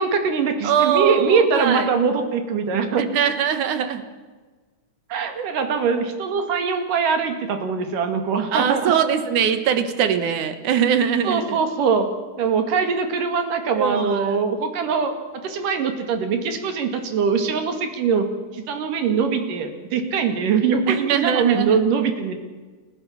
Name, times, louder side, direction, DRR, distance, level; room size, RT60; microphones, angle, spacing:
voice 1, 0.0-3.1 5.1-8.9 11.2-12.1 12.4-15.1 15.4-18.3 18.5-22.3, right 5 dB, 90° right, 7 dB, 3.7 m, -22 dB
voice 2, 0.6-1.9 3.0-4.0 5.4-5.5 8.5-11.6 13.7-14.2 20.9-21.8, right 8 dB, 75° right, 10 dB, 2.8 m, -22 dB
30.0 x 14.0 x 7.3 m, 1.4 s
omnidirectional pair, 3.6 m